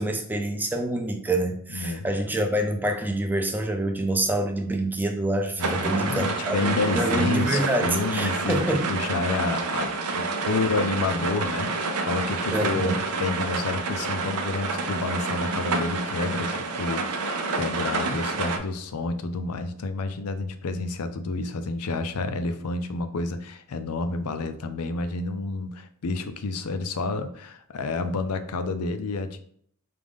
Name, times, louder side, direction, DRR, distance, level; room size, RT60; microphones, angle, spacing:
voice 1, 0.0-8.9 12.5-13.0, right 1 dB, 10° right, 0.5 m, -26 dB
voice 2, 1.7-2.1 5.6-29.4, left 3 dB, 85° left, 0.5 m, -29 dB
sound 1, 5.6-18.6, right 3 dB, 85° right, 0.6 m, -28 dB
4.9 x 2.5 x 3.5 m
head